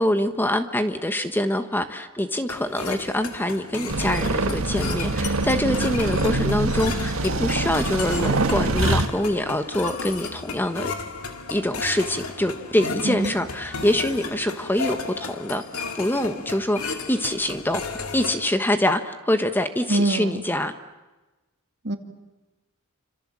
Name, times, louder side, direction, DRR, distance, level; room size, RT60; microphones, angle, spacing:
voice 1, 0.0-10.9 11.5-20.7, left 1 dB, 10° left, 8 dB, 1.2 m, -25 dB
sound 1, 2.5-18.5, left 4 dB, 75° left, 2.3 m, -34 dB
sound 2, 3.9-9.1, right 2 dB, 70° right, 1.7 m, -24 dB
voice 2, 19.9-20.4 21.8-22.0, right 2 dB, 55° right, 6 dB, 2.5 m, -23 dB
28.5 x 26.5 x 7.6 m, 1.1 s
head